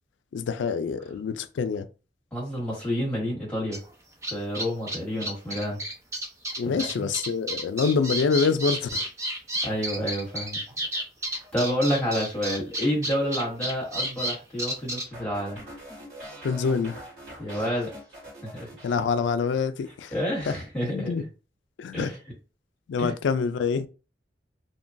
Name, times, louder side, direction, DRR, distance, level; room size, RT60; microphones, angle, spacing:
voice 1, 0.3-1.9 6.6-9.1 16.4-17.0 18.8-20.1 20.5-20.6 20.8-21.2 21.8-22.1 22.9-23.9, left 5 dB, 90° left, 0.3 m, -26 dB
voice 2, 2.3-3.8 4.3-5.8 6.6-7.1 9.6-10.6 11.3-15.6 17.4-17.9 18.4-18.7 20.1-21.3 21.9-22.2 23.0-23.1, equal, 5° left, 1.1 m, -29 dB
sound 1, 3.7-3.8 4.2-15.1, right 1 dB, 15° right, 0.4 m, -31 dB
sound 2, 15.1-19.6 19.8-20.3, right 1 dB, 65° right, 1.5 m, -44 dB
2.9 x 2.2 x 2.5 m
head